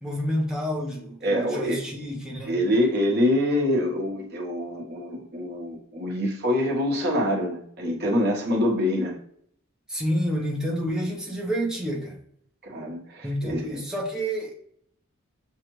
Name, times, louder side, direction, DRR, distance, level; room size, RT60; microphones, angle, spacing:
voice 1, 0.0-2.5 9.9-12.2 13.2-14.5, equal, 5° right, -2 dB, 0.8 m, -29 dB
voice 2, 1.2-1.8 2.5-9.2 12.6-13.7, left 1 dB, 50° right, -1 dB, 1.0 m, -25 dB
6.4 x 2.4 x 3.0 m, 0.68 s
head